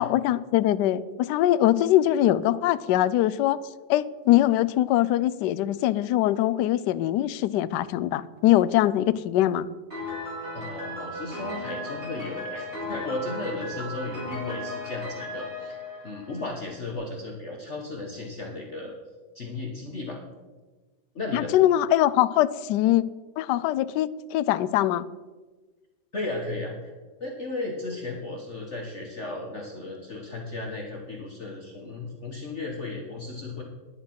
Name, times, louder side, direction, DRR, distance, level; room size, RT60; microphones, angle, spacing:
voice 1, 0.0-3.6 3.9-9.7 21.3-23.1 23.4-25.1, left 13 dB, 75° left, 15 dB, 1.1 m, -22 dB
Piano, 9.9-16.7, left 1 dB, 35° right, 4.8 m, -36 dB
voice 2, 10.5-15.8 16.0-18.9 19.3-20.2 21.1-21.5 26.1-26.9 27.2-33.6, left 2 dB, 40° left, 0 dB, 1.5 m, -35 dB
10.5 x 10.5 x 5.9 m, 1.3 s
omnidirectional pair, 2.1 m